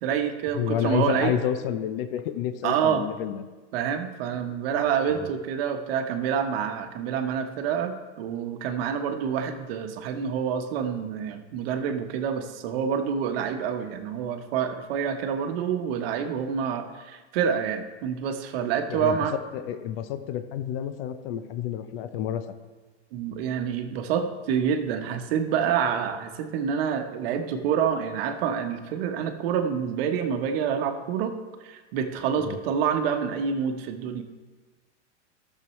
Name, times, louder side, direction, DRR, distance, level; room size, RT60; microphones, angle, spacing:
voice 1, 0.0-1.3 2.6-3.1 3.7-19.3 23.1-31.3 31.6-34.2, right 7 dB, 55° right, 6 dB, 1.1 m, -27 dB
voice 2, 0.6-3.4 5.1-5.3 18.9-19.2 19.5-22.4 32.4-32.6, left 10 dB, 55° left, 11 dB, 0.7 m, -29 dB
14.0 x 6.8 x 3.1 m, 1.3 s
hypercardioid pair, 135°, 36 cm